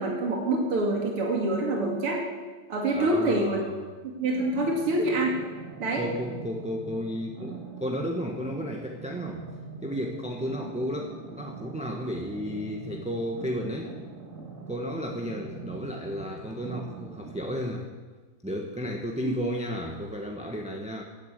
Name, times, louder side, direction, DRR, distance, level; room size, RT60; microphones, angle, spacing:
voice 1, 0.0-2.2 2.7-3.7 4.2-5.4 5.8-6.0 19.2-19.4, right 2 dB, 80° right, 0 dB, 3.4 m, -26 dB
voice 2, 2.9-3.8 5.9-9.4 9.8-13.9 14.7-17.9 18.4-21.0, equal, 5° right, 1 dB, 0.9 m, -33 dB
sound 1, 4.3-17.7, right 4 dB, 40° right, 2.0 m, -42 dB
15.5 x 11.0 x 8.3 m, 1.3 s
omnidirectional pair, 2.4 m